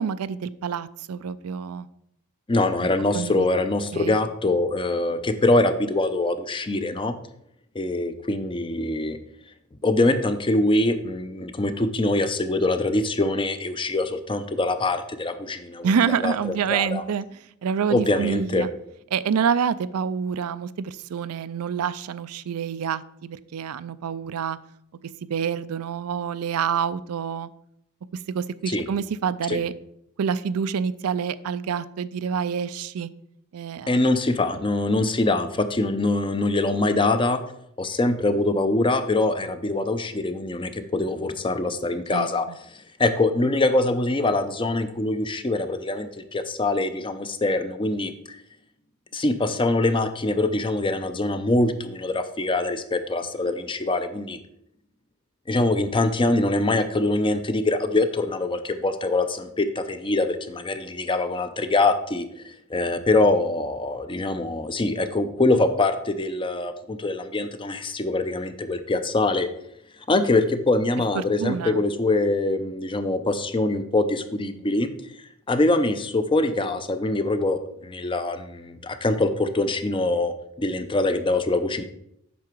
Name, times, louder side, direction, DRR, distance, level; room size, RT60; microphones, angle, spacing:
voice 1, 0.0-1.9 2.8-2.9 3.1-3.5 3.9-4.2 15.8-17.3 17.6-18.7 19.1-24.6 25.3-27.5 28.3-29.7 30.2-33.1 33.5-34.1 42.1-42.6 71.1-71.8, right 7 dB, 85° right, 15 dB, 0.4 m, -27 dB
voice 2, 2.5-7.1 7.7-9.2 9.8-17.0 17.9-18.7 28.7-28.9 29.5-29.6 33.9-37.4 37.8-42.5 43.0-48.1 49.1-54.4 55.5-69.5 70.1-74.9 75.5-81.8, left 2 dB, 25° left, 10 dB, 0.6 m, -24 dB
8.4 x 5.9 x 4.5 m, 0.75 s
head